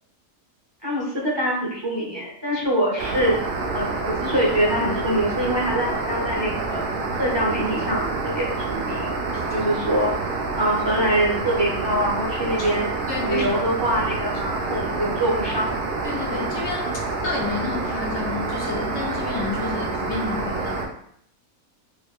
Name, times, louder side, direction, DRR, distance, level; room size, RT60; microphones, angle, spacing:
voice 1, 0.8-3.4 3.7-6.8 7.2-8.5 8.7-9.1 9.5-12.9 13.2-15.8, right 1 dB, 25° right, -6 dB, 0.7 m, -24 dB
sound 1, 3.0-20.9, right 3 dB, 65° right, 0.5 m, -27 dB
voice 2, 13.1-13.5 15.0-15.1 16.0-20.8, left 4 dB, 65° left, 0 dB, 0.8 m, -30 dB
3.0 x 2.4 x 3.5 m, 0.67 s
omnidirectional pair, 1.4 m